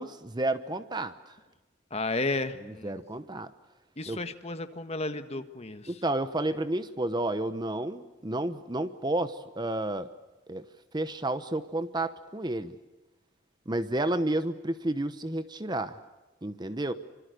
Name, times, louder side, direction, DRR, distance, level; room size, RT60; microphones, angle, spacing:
voice 1, 0.0-1.3 2.8-3.5 4.1-4.2 5.9-10.1 10.5-10.6 10.9-12.8 13.7-16.0 16.4-16.9, right 1 dB, 20° right, 11 dB, 0.9 m, -31 dB
voice 2, 1.9-3.0 4.0-6.0, left 2 dB, 30° left, 9 dB, 1.6 m, -33 dB
26.5 x 25.5 x 6.7 m, 1.2 s
head